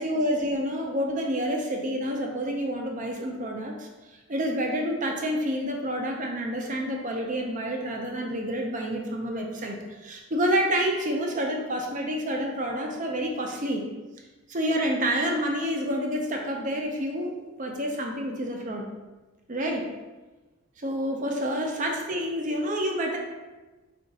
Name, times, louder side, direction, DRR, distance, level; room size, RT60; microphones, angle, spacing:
voice 1, 0.0-3.9 4.3-9.8 10.0-13.8 14.5-17.3 17.6-18.9 19.5-19.9 20.8-23.2, equal, 35° right, 1 dB, 0.5 m, -28 dB
4.8 x 2.5 x 3.9 m, 1.2 s
head